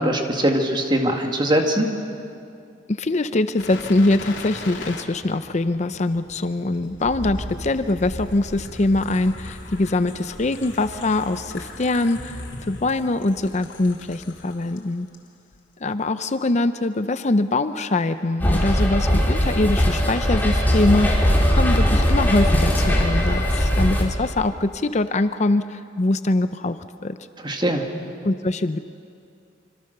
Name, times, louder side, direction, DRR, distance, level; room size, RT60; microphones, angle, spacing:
voice 1, 0.0-1.9 27.4-27.8, right 1 dB, 25° right, 3 dB, 2.2 m, -21 dB
voice 2, 2.9-15.1 15.8-27.2 28.2-28.8, left 2 dB, 40° left, 11 dB, 0.6 m, -23 dB
sound 1, 3.6-14.8 15.1-15.3, left 1 dB, 90° left, 3.5 m, -38 dB
sound 2, 18.4-24.0, equal, 10° left, 3.5 m, -19 dB
26.0 x 25.5 x 6.8 m, 2.5 s
head